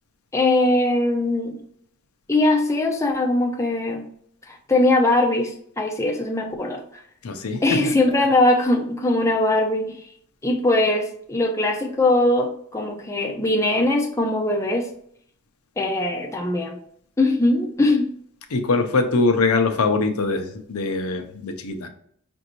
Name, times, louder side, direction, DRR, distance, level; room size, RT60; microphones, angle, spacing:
voice 1, 0.3-1.6 2.3-4.0 4.5-6.8 7.6-10.0 10.4-14.9 15.8-16.8 17.2-18.1, left 2 dB, 15° left, 1 dB, 0.5 m, -21 dB
voice 2, 7.2-7.9 18.5-21.9, left 3 dB, 80° left, 6 dB, 0.6 m, -22 dB
5.2 x 2.6 x 2.9 m, 0.65 s
head